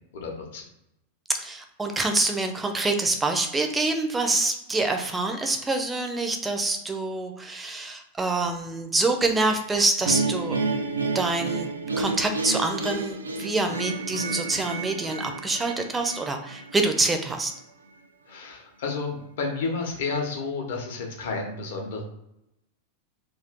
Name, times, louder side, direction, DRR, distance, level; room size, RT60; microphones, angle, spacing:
voice 1, 0.1-0.6 18.3-22.0, left 4 dB, 55° left, 0 dB, 0.8 m, -31 dB
voice 2, 1.4-10.6 11.1-11.7 12.0-17.5, right 3 dB, 10° right, 4 dB, 0.5 m, -26 dB
sound 1, 10.1-17.2, right 3 dB, 75° right, 0.3 m, -30 dB
2.5 x 2.5 x 3.4 m, 0.83 s
figure-of-eight pair, 90°, 0 cm